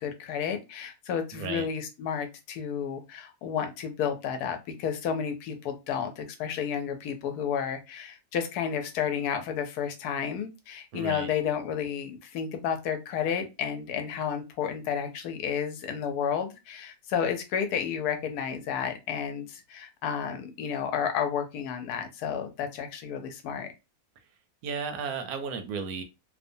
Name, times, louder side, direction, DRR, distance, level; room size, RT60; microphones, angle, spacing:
voice 1, 0.0-23.7, left 8 dB, 85° left, 6 dB, 1.1 m, -31 dB
voice 2, 1.3-1.7 10.9-11.3 24.6-26.0, right 6 dB, 80° right, 7 dB, 1.1 m, -34 dB
2.9 x 2.1 x 2.6 m, 0.26 s
omnidirectional pair, 1.6 m